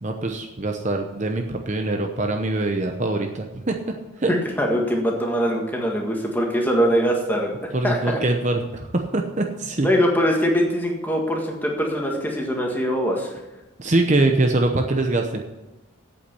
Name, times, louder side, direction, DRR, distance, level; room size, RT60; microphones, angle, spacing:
voice 1, 0.0-4.3 7.7-9.9 13.8-15.4, right 2 dB, 35° right, 3 dB, 0.8 m, -23 dB
voice 2, 4.3-7.5 7.8-8.2 9.8-13.3, equal, 10° left, 0 dB, 1.7 m, -22 dB
8.4 x 8.4 x 8.3 m, 1.0 s
head